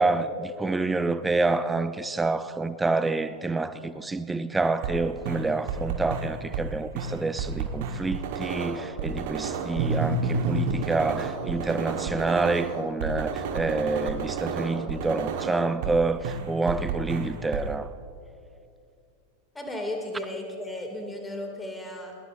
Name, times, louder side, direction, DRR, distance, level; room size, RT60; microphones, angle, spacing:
voice 1, 0.0-17.9, right 3 dB, 10° right, 13 dB, 0.6 m, -27 dB
sound 1, 4.5-5.0 5.2-6.7 6.9-16.0 16.2-17.7, right 4 dB, 50° right, 1.3 m, -30 dB
voice 2, 19.5-22.1, left 1 dB, 10° left, 3 dB, 2.4 m, -34 dB
21.0 x 19.0 x 2.6 m, 2.6 s
figure-of-eight pair, 90°, 0 cm